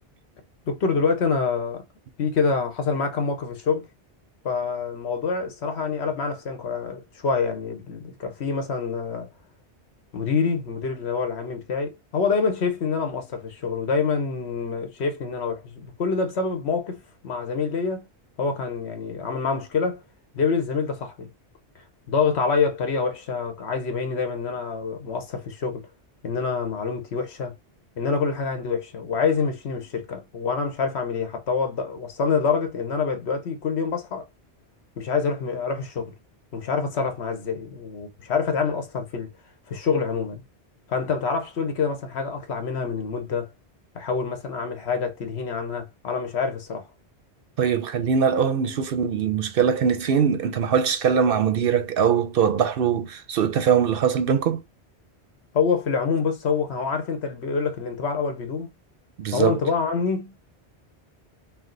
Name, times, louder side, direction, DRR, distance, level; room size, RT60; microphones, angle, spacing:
voice 1, 0.7-1.8 2.2-3.9 4.4-9.3 10.1-18.0 18.4-20.0 20.3-21.3 22.1-25.8 26.2-27.6 28.0-34.2 35.0-36.1 36.5-39.3 39.7-40.4 40.9-43.5 43.9-46.9 55.5-58.7 59.3-60.3, left 5 dB, 70° left, 1.2 m, -26 dB
voice 2, 47.6-54.6 59.2-59.6, right 7 dB, 65° right, 0.7 m, -22 dB
4.8 x 2.0 x 3.8 m
omnidirectional pair, 1.1 m